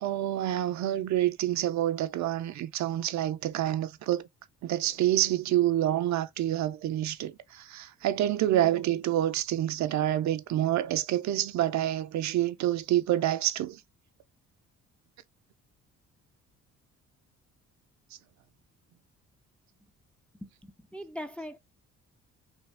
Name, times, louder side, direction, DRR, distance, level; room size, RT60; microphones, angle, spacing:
voice 1, 0.0-4.3 4.6-13.8, right 13 dB, 65° right, 0.5 m, -27 dB
voice 2, 20.4-21.6, equal, 5° left, 0.3 m, -41 dB
3.2 x 2.3 x 3.3 m
cardioid pair, 90°, 30 cm